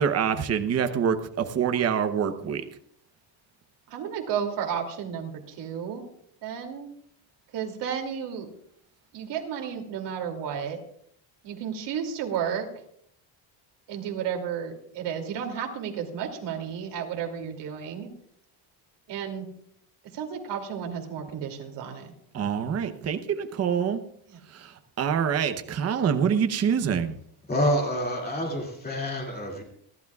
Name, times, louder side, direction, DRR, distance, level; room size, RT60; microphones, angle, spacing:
voice 1, 0.0-2.6 22.3-24.0 24.6-24.7 25.0-27.2, right 7 dB, 30° right, 7 dB, 0.9 m, -25 dB
voice 2, 3.9-6.0 6.4-6.9 7.5-8.5 9.1-10.8 11.4-12.7 13.9-18.1 19.1-19.5 20.0-22.1 24.3-24.4, right 8 dB, 60° right, 3 dB, 2.8 m, -32 dB
voice 3, 27.5-29.6, equal, 20° left, 0 dB, 2.5 m, -27 dB
29.5 x 12.0 x 2.4 m, 0.67 s
cardioid pair, 160°, 47 cm